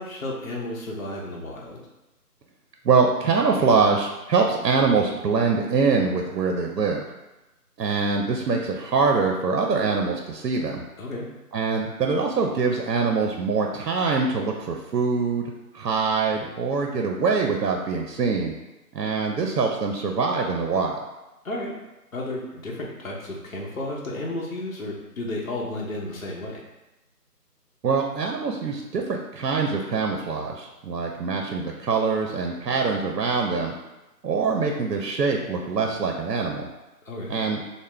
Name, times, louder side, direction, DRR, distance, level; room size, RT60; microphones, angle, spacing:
voice 1, 0.0-1.8 11.0-11.3 21.4-21.7 22.1-26.6 37.0-37.3, left 1 dB, 55° left, -3 dB, 0.8 m, -32 dB
voice 2, 2.8-7.0 7.8-10.8 11.5-18.5 18.9-21.0 27.8-33.7 34.2-36.7 37.3-37.6, right 4 dB, 85° right, 2 dB, 0.6 m, -24 dB
3.6 x 2.1 x 3.2 m, 1.0 s
figure-of-eight pair, 170°, 48 cm